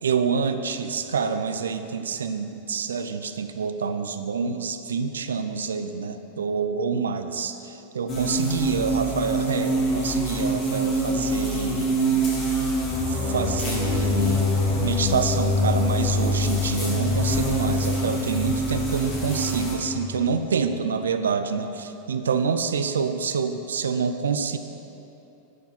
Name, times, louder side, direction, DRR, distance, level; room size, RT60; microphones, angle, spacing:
voice 1, 0.0-11.9 13.1-24.6, right 5 dB, 65° right, 9 dB, 0.4 m, -27 dB
sound 1, 8.1-19.7, right 2 dB, 30° left, 2.0 m, -27 dB
sound 2, 12.8-20.1, left 4 dB, 50° left, 1.5 m, -26 dB
11.0 x 4.5 x 5.7 m, 2.9 s
figure-of-eight pair, 90°, 0 cm